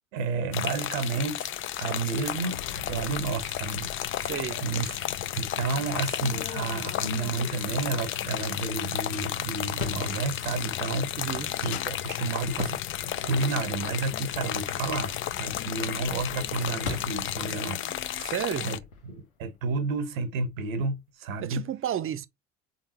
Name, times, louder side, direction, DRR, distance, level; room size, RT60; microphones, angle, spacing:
voice 1, 0.1-1.5 1.8-4.3 4.6-4.9 5.3-12.8 13.2-17.9 18.6-18.8 19.0-21.6, right 4 dB, 80° right, 1.0 m, -31 dB
sound 1, 0.5-18.8, left 11 dB, 30° left, 0.4 m, -33 dB
sound 2, 1.5-17.6, left 12 dB, 65° left, 0.7 m, -42 dB
voice 2, 4.2-5.0 11.2-11.5 18.2-18.7 21.4-22.3, right 10 dB, 30° right, 0.7 m, -32 dB
sound 3, 15.9-20.3, left 5 dB, 85° left, 1.0 m, -43 dB
3.9 x 3.6 x 2.9 m
figure-of-eight pair, 55°, 40 cm